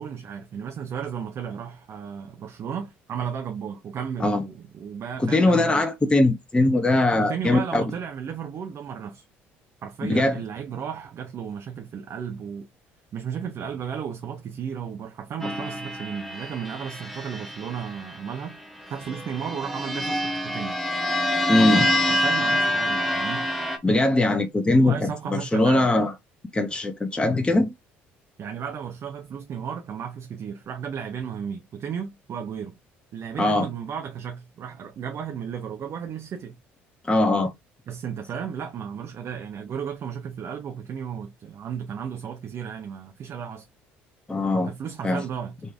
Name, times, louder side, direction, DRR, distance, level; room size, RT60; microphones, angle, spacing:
voice 1, 0.0-5.8 7.2-9.2 9.8-12.7 13.1-18.6 18.9-20.8 21.6-23.5 24.7-25.9 28.4-32.8 33.1-36.6 37.9-43.7 44.6-45.6, right 7 dB, 50° right, 0.8 m, -34 dB
voice 2, 5.2-7.8 10.0-10.4 21.5-21.9 23.8-26.1 26.5-27.7 33.4-33.7 37.1-37.5 44.3-44.7 45.0-45.2, left 2 dB, 15° left, 1.0 m, -21 dB
sound 1, 15.4-18.2 19.0-23.8, left 1 dB, ahead, 1.3 m, -26 dB
4.1 x 3.3 x 3.5 m
hypercardioid pair, 60°, 6 cm